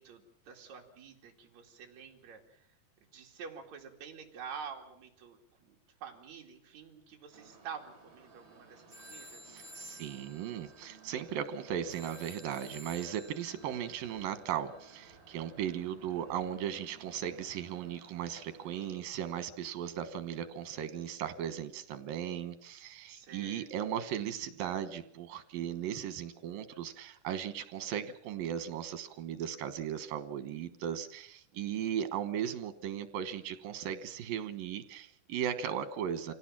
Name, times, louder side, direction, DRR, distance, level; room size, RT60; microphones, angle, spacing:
voice 1, 0.0-2.6 3.0-9.5 16.1-16.4 23.1-23.7 31.5-32.0, right 6 dB, 55° right, 1 dB, 3.7 m, -48 dB
sound 1, 7.3-18.9, right 4 dB, 35° right, 3.9 m, -58 dB
sound 2, 8.3-8.5 8.9-15.6, equal, 15° right, 1.2 m, -54 dB
voice 2, 9.5-36.3, right 9 dB, 85° right, 11 dB, 3.0 m, -37 dB
25.5 x 17.0 x 7.4 m, 0.69 s
omnidirectional pair, 3.9 m